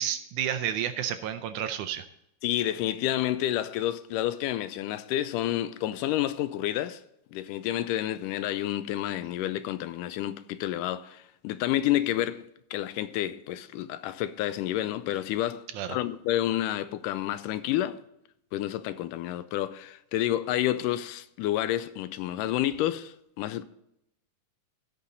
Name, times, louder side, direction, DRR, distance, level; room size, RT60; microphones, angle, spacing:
voice 1, 0.0-2.1 15.7-16.0, right 10 dB, 80° right, 1.9 m, -31 dB
voice 2, 2.4-7.0 7.3-18.0 18.5-23.6, left 13 dB, 80° left, 2.0 m, -29 dB
16.5 x 5.6 x 4.0 m
omnidirectional pair, 3.9 m